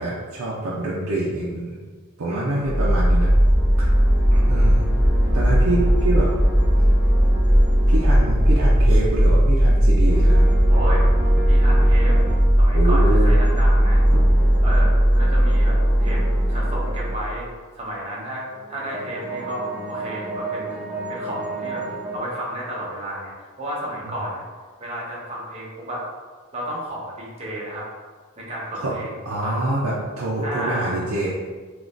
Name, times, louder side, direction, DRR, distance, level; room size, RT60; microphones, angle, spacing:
voice 1, 0.0-1.8 2.2-3.3 3.8-3.9 4.5-4.9 5.3-6.3 7.9-10.5 12.7-13.3 14.1-14.2 24.0-24.1 28.7-28.9 29.3-31.3, right 2 dB, 65° right, -7 dB, 0.5 m, -26 dB
voice 2, 2.2-2.8 4.3-4.8 10.7-11.1 11.5-12.2 12.6-14.0 14.6-16.2 16.5-17.5 17.8-20.7 21.1-21.8 22.1-24.4 24.8-26.0 26.5-27.9 28.4-29.7 30.4-31.0, right 1 dB, 30° right, -6 dB, 0.9 m, -32 dB
sound 1, 2.6-17.4, equal, 15° left, 1.1 m, -17 dB
sound 2, 3.1-9.2 10.0-12.6 13.3-17.1 18.4-22.2, right 2 dB, 5° right, 0.4 m, -34 dB
3.6 x 3.0 x 2.5 m, 1.5 s
head